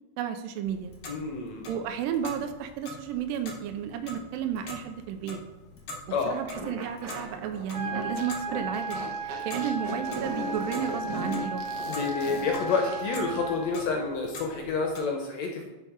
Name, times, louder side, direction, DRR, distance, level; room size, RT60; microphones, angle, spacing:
voice 1, 0.2-0.9 1.7-5.4 6.3-11.6, right 9 dB, 85° right, 7 dB, 2.2 m, -33 dB
Clock, 0.6-15.0, left 2 dB, 90° left, 1.1 m, -45 dB
voice 2, 1.1-1.7 6.1-6.4 11.8-15.6, left 4 dB, 75° left, 2 dB, 1.6 m, -29 dB
sound 1, 6.5-13.1, right 1 dB, 70° right, 1.5 m, -37 dB
sound 2, 7.7-13.7, right 1 dB, 50° right, 0.5 m, -35 dB
6.7 x 5.3 x 4.8 m, 1.2 s
omnidirectional pair, 4.0 m